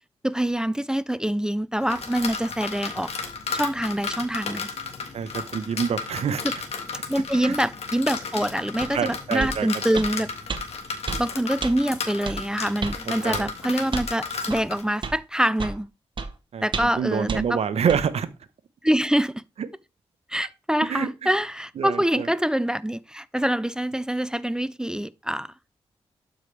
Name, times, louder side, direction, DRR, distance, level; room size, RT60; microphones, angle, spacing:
voice 1, 0.2-3.1 3.5-4.7 7.1-10.3 11.2-15.9 16.6-17.6 18.8-19.4 20.3-25.5, right 1 dB, 5° right, 0.3 m, -25 dB
sound 1, 1.8-14.8, left 5 dB, 70° left, 1.5 m, -34 dB
voice 2, 5.1-6.4 7.4-7.6 8.9-9.7 13.2-13.5 16.5-18.3 19.6-19.7 20.9-21.1 21.8-22.3, right 7 dB, 70° right, 0.8 m, -26 dB
sound 2, 8.8-8.9 9.4-9.6 10.0-10.1 10.5-10.6 11.1-11.2 11.6-11.7 12.3-12.4 12.8-13.0 13.3-13.5 13.9-14.1 14.5-14.6 15.0-15.2 15.6-15.8 16.2-16.3 16.7-17.0 17.3-17.4 17.9-18.0, right 4 dB, 50° right, 0.9 m, -30 dB
12.0 x 4.9 x 3.3 m
cardioid pair, 95°, 11 cm